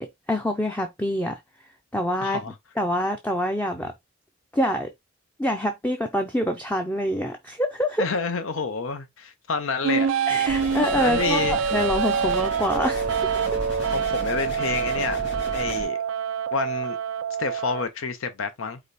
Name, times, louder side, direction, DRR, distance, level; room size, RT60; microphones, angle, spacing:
voice 1, 0.0-1.4 1.9-2.4 2.8-3.9 4.5-4.9 5.4-8.1 10.3-13.4, equal, 10° left, 0.4 m, -26 dB
voice 2, 2.2-2.5 8.0-10.1 11.0-11.6 13.9-15.2 15.5-16.0 16.5-17.0 17.4-18.8, left 5 dB, 80° left, 0.7 m, -28 dB
sound 1, 9.8-17.8, right 7 dB, 80° right, 0.4 m, -26 dB
sound 2, 10.5-15.9, equal, 50° left, 2.7 m, -34 dB
4.9 x 2.2 x 4.0 m
head